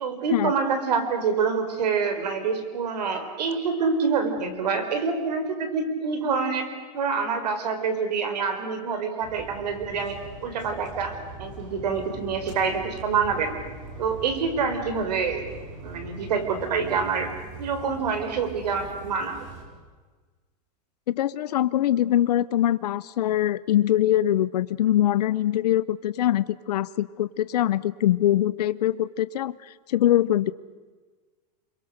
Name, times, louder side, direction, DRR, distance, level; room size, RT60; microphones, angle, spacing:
voice 1, 0.0-6.7 6.9-10.2 10.4-13.6 14.0-15.5 15.8-17.3 17.6-19.4, right 5 dB, 75° right, 8 dB, 4.4 m, -26 dB
sound 1, 9.2-19.6, right 3 dB, 50° right, 5.5 m, -42 dB
voice 2, 21.1-30.5, left 12 dB, 70° left, 16 dB, 0.7 m, -23 dB
29.5 x 22.5 x 6.6 m, 1.4 s
supercardioid pair, 180°, 21 cm